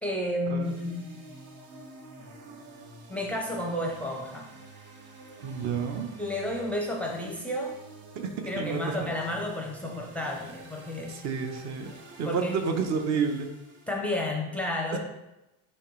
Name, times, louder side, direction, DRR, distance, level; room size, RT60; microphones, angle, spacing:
voice 1, 0.0-1.2 3.1-4.5 6.2-7.8 8.5-11.2 12.3-12.5 13.9-15.0, left 1 dB, 5° left, 0 dB, 0.6 m, -31 dB
sound 1, 0.6-14.1, right 2 dB, 65° right, 1.5 m, -49 dB
voice 2, 5.4-6.1 8.6-9.1 11.1-11.9 12.2-13.5 14.9-15.0, right 5 dB, 45° right, 6 dB, 0.8 m, -30 dB
9.8 x 3.4 x 3.1 m, 0.96 s
cardioid pair, 150°, 40 cm